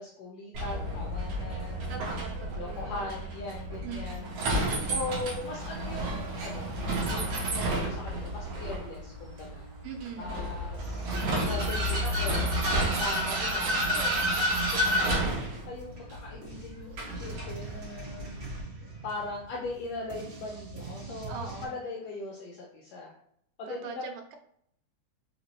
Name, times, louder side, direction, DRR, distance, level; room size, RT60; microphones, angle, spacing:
voice 1, 0.0-1.9 2.5-4.3 4.8-6.7 7.1-9.7 10.2-11.2 11.5-12.4 12.9-18.5 19.0-23.1 23.6-24.0, left 2 dB, 85° left, -1 dB, 1.5 m, -40 dB
Vehicle, 0.5-18.6, right 1 dB, 65° right, 1.6 m, -31 dB
voice 2, 1.9-2.9 3.8-4.4 9.8-10.3 21.3-21.8 23.7-24.4, right 5 dB, 85° right, 4 dB, 2.1 m, -41 dB
sound 1, 15.2-21.7, right 3 dB, 45° right, 2.0 m, -44 dB
5.0 x 2.6 x 3.0 m, 0.70 s
omnidirectional pair, 3.6 m